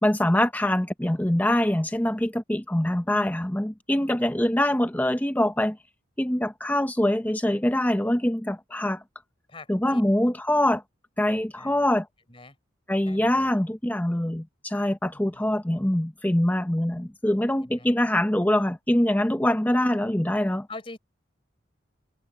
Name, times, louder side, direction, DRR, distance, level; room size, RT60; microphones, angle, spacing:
voice 1, 0.0-5.8 6.2-9.0 9.7-10.8 11.2-12.1 12.9-20.7, left 1 dB, 10° left, 0.6 m, -24 dB
voice 2, 9.5-10.0 11.6-11.9 12.3-12.6 13.0-13.6 15.1-15.5 17.6-17.9 20.7-21.0, left 2 dB, 30° left, 4.5 m, -44 dB
head